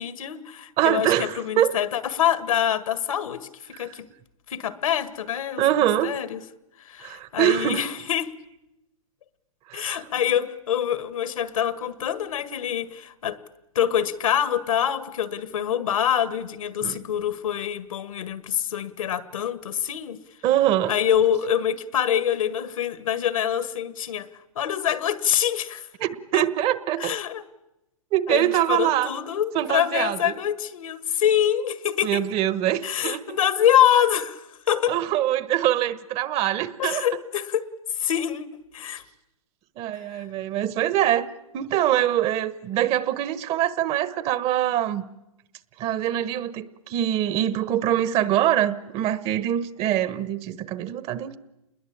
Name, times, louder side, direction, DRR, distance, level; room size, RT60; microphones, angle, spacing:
voice 1, 0.0-4.1 4.5-5.6 6.0-6.4 6.8-8.3 9.7-13.4 13.8-20.2 20.9-24.3 24.6-25.9 26.3-26.4 27.0-27.4 28.3-32.2 32.8-35.0 36.8-37.7 38.0-38.5 38.7-39.0, left 10 dB, 75° left, 1.8 m, -25 dB
voice 2, 0.8-1.7 5.6-6.2 7.0-7.8 9.7-10.1 16.8-16.9 20.4-20.9 26.0-27.1 28.1-29.1 29.5-30.4 32.0-33.4 34.9-37.1 39.8-41.3 41.5-45.0 45.8-51.4, right 12 dB, 35° right, 1.3 m, -24 dB
28.5 x 21.0 x 8.7 m
hypercardioid pair, 120°, 18 cm